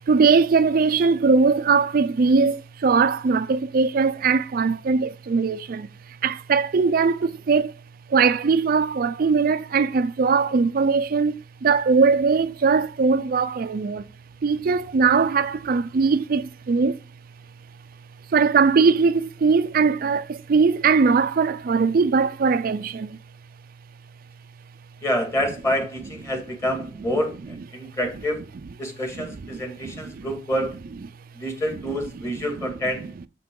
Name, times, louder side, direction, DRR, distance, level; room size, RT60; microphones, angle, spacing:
voice 1, 0.1-5.9 6.2-7.7 8.1-14.1 14.4-17.0 18.3-23.2 29.2-29.3 29.8-30.3, right 5 dB, 55° right, 0.4 m, -20 dB
voice 2, 25.0-28.4 28.8-30.8 31.3-33.1, equal, 15° left, 1.9 m, -27 dB
7.3 x 5.8 x 3.7 m
head